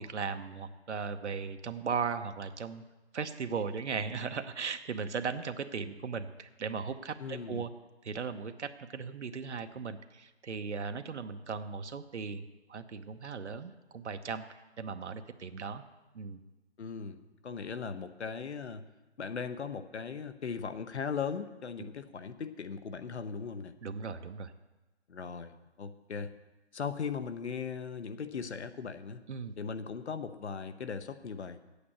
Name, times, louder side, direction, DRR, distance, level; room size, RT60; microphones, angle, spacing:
voice 1, 0.0-2.8 3.1-7.7 8.0-15.8 16.1-16.4 21.8-21.9 23.8-24.5 29.3-29.5, right 5 dB, 90° right, 8 dB, 0.9 m, -37 dB
voice 2, 7.2-7.6 16.8-18.9 19.2-23.7 25.1-25.5 25.8-26.3 26.7-29.2 29.6-31.6, left 6 dB, 75° left, 10 dB, 0.9 m, -38 dB
8.7 x 8.5 x 8.3 m, 1.1 s
hypercardioid pair, 165°, 34 cm